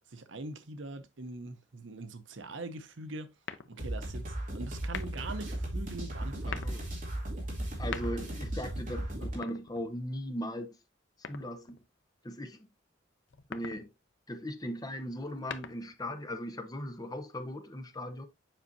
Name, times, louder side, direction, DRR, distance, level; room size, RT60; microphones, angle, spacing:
voice 1, 0.1-3.3 3.7-6.6, right 2 dB, 80° right, 0.8 m, -42 dB
sound 1, 3.4-4.0 4.8-5.4 6.3-6.8 7.7-8.5 9.3-10.2 11.2-11.9 13.3-13.9 15.2-16.1, left 6 dB, 75° left, 0.6 m, -43 dB
sound 2, 3.8-9.3, right 1 dB, 45° right, 2.7 m, -36 dB
voice 2, 6.5-6.8 7.6-10.8 11.2-11.8 12.2-12.6 13.5-13.9 14.3-18.3, equal, 20° left, 0.8 m, -38 dB
7.4 x 5.4 x 2.7 m
head